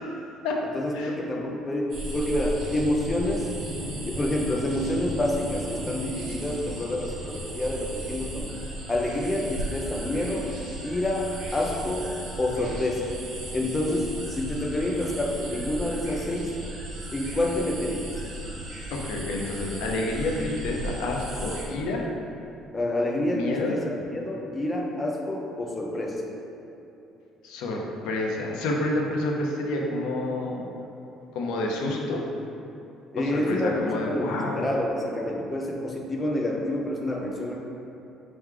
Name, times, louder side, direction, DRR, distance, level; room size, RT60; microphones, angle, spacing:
voice 1, 0.0-0.6 0.9-1.1 18.9-22.1 23.3-23.8 27.4-30.6 31.3-32.2 33.2-34.7, left 2 dB, 85° left, 0 dB, 0.6 m, -29 dB
voice 2, 0.7-3.4 4.1-8.5 8.9-10.5 10.8-12.1 12.4-13.1 13.5-16.5 17.1-18.1 22.7-26.3 33.1-37.6, left 1 dB, 15° left, -1 dB, 0.5 m, -28 dB
sound 1, 1.9-21.6, right 1 dB, 50° right, 1.0 m, -35 dB
4.6 x 3.1 x 3.7 m, 2.9 s
cardioid pair, 165°, 0 cm